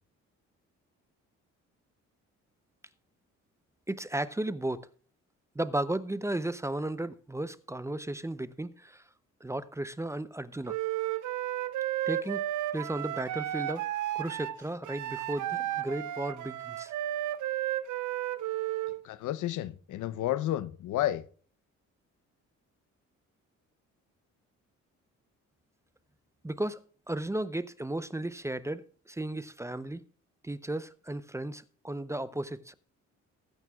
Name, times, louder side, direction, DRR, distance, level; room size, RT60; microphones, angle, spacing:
voice 1, 3.9-4.9 5.6-9.0 9.4-10.8 12.1-12.4 12.7-13.8 14.1-16.9 26.4-26.8 27.1-28.8 29.1-30.0 30.4-32.7, right 1 dB, 10° right, 0.6 m, -34 dB
Wind instrument woodwind instrument, 10.7-19.0, right 13 dB, 75° right, 0.7 m, -33 dB
voice 2, 19.0-21.2, left 13 dB, 85° left, 0.8 m, -31 dB
19.5 x 9.1 x 2.4 m
cardioid pair, 90°, 30 cm